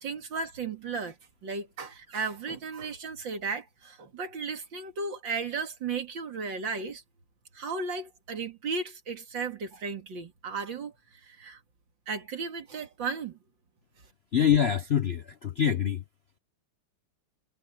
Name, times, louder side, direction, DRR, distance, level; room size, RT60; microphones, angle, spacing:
voice 1, 0.0-1.1 1.4-7.0 7.5-10.9 11.2-11.6 12.1-13.4, right 4 dB, 70° right, 2.9 m, -35 dB
voice 2, 14.3-16.0, left 8 dB, 50° left, 0.7 m, -25 dB
omnidirectional pair, 2.1 m